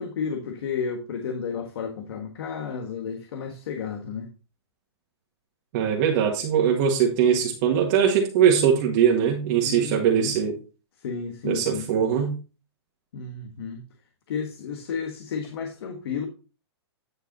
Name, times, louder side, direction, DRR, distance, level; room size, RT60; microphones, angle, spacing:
voice 1, 0.0-4.3 9.6-10.4 11.0-11.9 13.1-13.8 14.3-16.3, left 6 dB, 65° left, 1.5 m, -32 dB
voice 2, 5.7-10.6 11.4-12.3, right 8 dB, 40° right, 1.6 m, -21 dB
10.0 x 5.2 x 3.9 m
hypercardioid pair, 150°, 14 cm